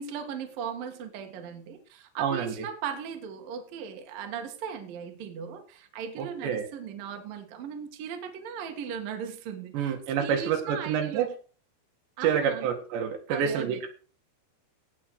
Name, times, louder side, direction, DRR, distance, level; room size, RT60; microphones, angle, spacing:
voice 1, 0.0-11.3 12.2-12.7 13.3-13.8, right 7 dB, 60° right, 5 dB, 3.2 m, -38 dB
voice 2, 2.2-2.7 6.2-6.7 9.7-11.3 12.2-13.9, right 8 dB, 80° right, 5 dB, 4.0 m, -28 dB
17.0 x 6.2 x 6.4 m, 0.40 s
omnidirectional pair, 5.0 m